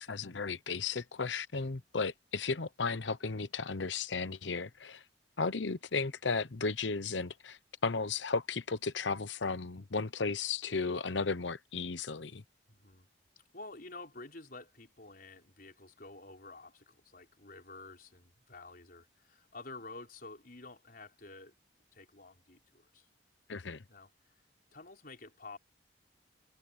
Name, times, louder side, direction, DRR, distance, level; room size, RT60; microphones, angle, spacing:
voice 1, 0.0-5.0 5.4-12.4 23.5-23.8, left 4 dB, 85° left, 1.0 m, -35 dB
voice 2, 12.7-13.1 13.5-21.5 21.9-23.1 23.9-24.1 24.7-25.6, left 3 dB, 50° left, 4.9 m, -50 dB
head